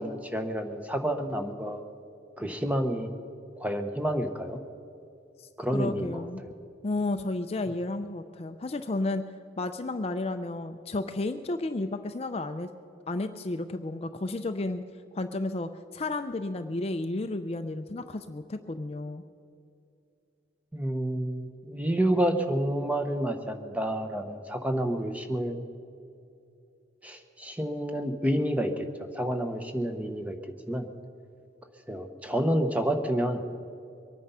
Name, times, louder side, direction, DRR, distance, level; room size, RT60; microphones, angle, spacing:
voice 1, 0.0-1.8 2.4-3.1 3.6-4.6 5.6-6.2 20.7-25.6 27.0-30.9 31.9-33.4, right 1 dB, 10° right, 6 dB, 0.9 m, -29 dB
voice 2, 5.4-6.4 6.8-9.2 9.6-12.7 13.1-14.8 15.1-19.2, left 2 dB, 35° left, 8 dB, 0.4 m, -32 dB
23.0 x 9.5 x 5.6 m, 2.6 s
head